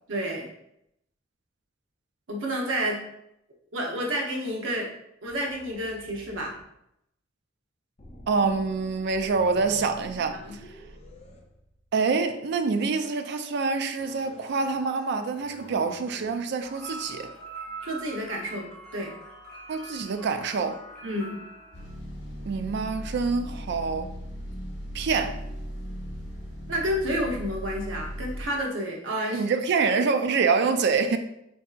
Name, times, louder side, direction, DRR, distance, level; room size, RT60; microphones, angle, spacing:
voice 1, 0.1-0.5 2.3-3.0 3.7-4.9 5.2-6.5 10.4-10.6 17.8-18.7 18.9-19.1 21.0-21.4 26.7-29.4, equal, 80° right, 0.8 m, -30 dB
sound 1, 5.2-6.7 8.0-12.2 14.0-14.9 15.2-16.4, equal, 35° left, 0.6 m, -49 dB
voice 2, 8.3-10.7 11.9-17.3 19.7-20.8 22.5-24.1 24.9-25.4 29.3-31.2, right 4 dB, 60° right, 0.4 m, -26 dB
sound 2, 16.6-21.9, right 2 dB, 5° left, 0.8 m, -43 dB
sound 3, 21.7-28.5, equal, 65° left, 1.0 m, -37 dB
4.5 x 2.6 x 2.4 m
head